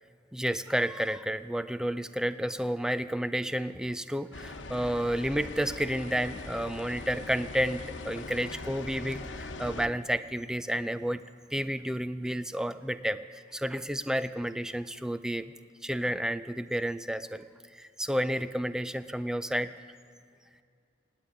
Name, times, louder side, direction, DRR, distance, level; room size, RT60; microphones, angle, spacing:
voice 1, 0.3-11.2 11.5-13.2 13.5-15.5 15.8-17.4 17.7-19.7, equal, 5° right, 12 dB, 0.4 m, -31 dB
sound 1, 4.3-9.9, left 3 dB, 85° left, 1.0 m, -41 dB
17.5 x 8.6 x 9.3 m, 2.4 s
head